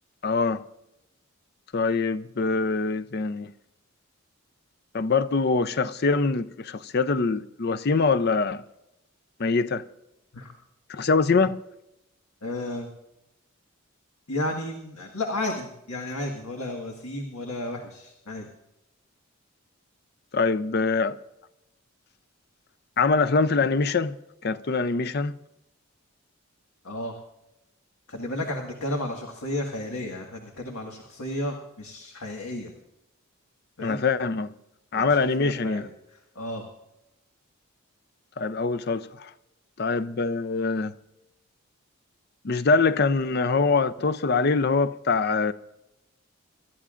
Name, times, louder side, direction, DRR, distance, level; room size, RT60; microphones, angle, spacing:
voice 1, 0.2-0.6 1.7-3.5 4.9-8.6 9.4-9.8 10.9-11.6 20.3-21.2 23.0-24.2 24.4-25.3 33.8-34.5 34.9-35.9 38.4-39.3 39.8-40.9 42.4-45.5, left 4 dB, 45° left, 0.5 m, -24 dB
voice 2, 12.4-13.0 14.3-18.5 26.8-27.1 28.1-32.7 33.8-34.0 34.9-36.6, left 1 dB, 90° left, 1.7 m, -33 dB
26.5 x 13.0 x 2.5 m
head